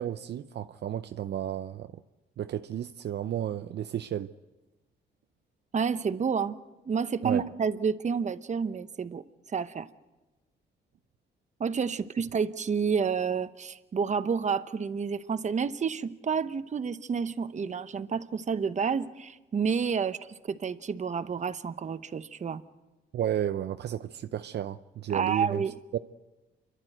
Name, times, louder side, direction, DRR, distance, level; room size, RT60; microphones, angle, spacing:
voice 1, 0.0-1.9 2.4-4.3 7.2-7.4 23.1-25.6 25.9-26.0, right 10 dB, 60° right, 0.6 m, -32 dB
voice 2, 5.7-6.6 6.9-9.2 9.5-9.9 11.6-20.2 20.5-22.6 25.1-25.8, right 6 dB, 35° right, 0.9 m, -29 dB
29.0 x 12.0 x 9.2 m
cardioid pair, 90°, 20 cm